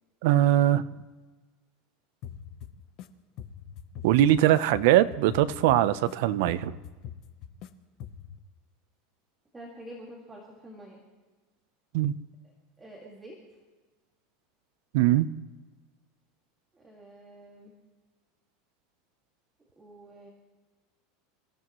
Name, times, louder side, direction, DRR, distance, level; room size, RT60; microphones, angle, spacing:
voice 1, 0.2-0.8 4.0-6.8 11.9-12.1 14.9-15.3, right 13 dB, 60° right, 14 dB, 0.7 m, -21 dB
sound 1, 2.2-3.1 3.4-6.1 6.4-7.7 8.0-8.4, left 9 dB, 40° left, 0.9 m, -43 dB
voice 2, 9.5-11.0 12.4-13.4 16.7-17.7 19.8-20.3, right 1 dB, 10° right, -3 dB, 2.1 m, -47 dB
26.5 x 15.5 x 3.1 m, 1.3 s
supercardioid pair, 170°, 0 cm